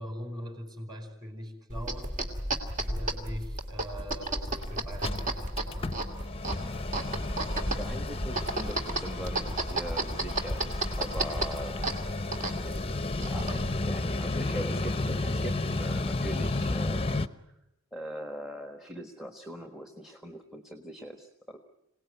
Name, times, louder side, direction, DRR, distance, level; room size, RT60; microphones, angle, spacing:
voice 1, 0.0-2.2 2.9-6.3 13.3-13.5, equal, 20° right, 6 dB, 4.7 m, -42 dB
sound 1, 1.7-13.8, right 2 dB, 40° right, 2.4 m, -33 dB
Mechanical fan, 4.2-4.3 4.6-4.7 4.9-17.3, left 2 dB, 25° left, 0.9 m, -33 dB
voice 2, 7.6-11.8 12.6-17.1 17.5-17.6 17.9-21.6, equal, ahead, 6 dB, 1.4 m, -41 dB
26.5 x 18.5 x 9.4 m, 0.86 s
head